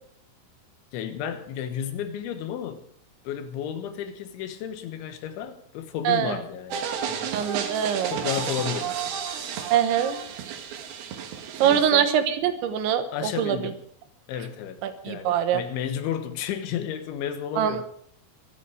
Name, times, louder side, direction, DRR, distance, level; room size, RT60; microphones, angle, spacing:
voice 1, 0.9-2.9 3.3-7.4 8.1-9.1 11.6-12.1 13.1-13.8 14.3-17.8, left 9 dB, 90° left, 3.6 m, -33 dB
voice 2, 6.0-6.4 7.3-8.1 9.7-10.2 11.6-13.7 14.8-15.6 17.6-17.8, right 9 dB, 80° right, 3.5 m, -23 dB
sound 1, 6.7-11.9, right 7 dB, 65° right, 3.0 m, -32 dB
25.0 x 8.4 x 4.9 m
omnidirectional pair, 5.2 m